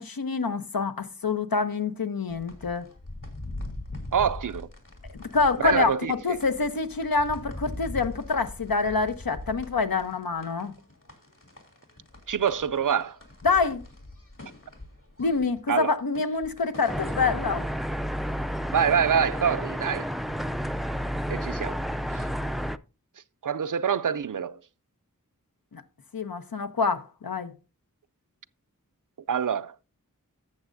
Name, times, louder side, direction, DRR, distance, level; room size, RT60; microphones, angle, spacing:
voice 1, 0.0-2.9 5.1-10.7 13.4-13.8 15.2-17.7 25.7-25.8 26.1-27.5, left 4 dB, 85° left, 0.9 m, -26 dB
sound 1, 2.3-17.2, left 2 dB, 65° left, 2.8 m, -42 dB
voice 2, 4.1-4.7 5.6-6.4 12.3-13.2 15.7-16.0 18.7-20.1 21.3-21.8 22.1-22.2 23.4-24.6 29.3-29.7, right 7 dB, 65° right, 0.5 m, -26 dB
sound 2, 16.9-22.8, equal, ahead, 0.4 m, -31 dB
12.5 x 7.4 x 2.6 m
wide cardioid pair, 40°, 34 cm